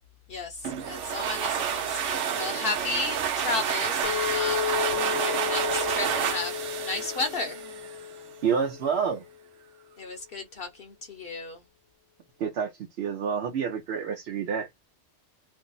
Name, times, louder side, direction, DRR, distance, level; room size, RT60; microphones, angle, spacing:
voice 1, 0.3-6.6 6.8-7.6 10.0-11.6, left 3 dB, 60° left, 0.8 m, -34 dB
sound 1, 0.6-8.1, right 8 dB, 90° right, 1.0 m, -29 dB
Chink clink, 4.0-9.2, left 10 dB, 85° left, 1.0 m, -33 dB
voice 2, 8.4-9.2 12.4-12.7 13.0-14.7, right 6 dB, 65° right, 0.8 m, -28 dB
2.6 x 2.0 x 3.8 m
omnidirectional pair, 1.2 m